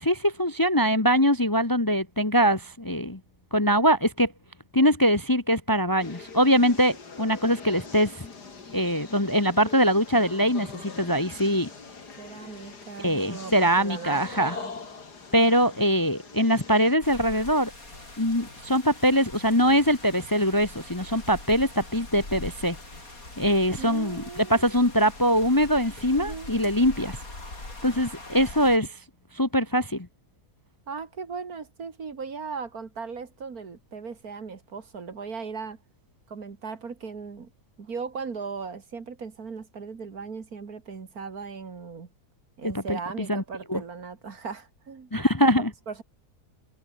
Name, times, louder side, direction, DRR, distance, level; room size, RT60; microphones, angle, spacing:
voice 1, 0.0-3.2 3.5-4.3 4.7-8.2 8.7-11.7 13.0-14.6 15.3-17.7 18.2-22.8 23.4-27.2 27.8-28.9 29.3-30.1 42.6-43.0 43.3-43.4 43.7-43.8 45.1-45.7, equal, 15° left, 1.2 m, -23 dB
sound 1, 6.0-17.0, left 4 dB, 85° left, 3.4 m, -42 dB
voice 2, 12.2-14.7 23.8-24.7 26.1-26.5 30.9-35.8 36.3-37.5 37.8-42.1 42.6-45.1 45.9-46.0, right 5 dB, 65° right, 2.6 m, -37 dB
sound 2, 17.0-28.8, left 2 dB, 60° left, 6.0 m, -42 dB
omnidirectional pair, 1.7 m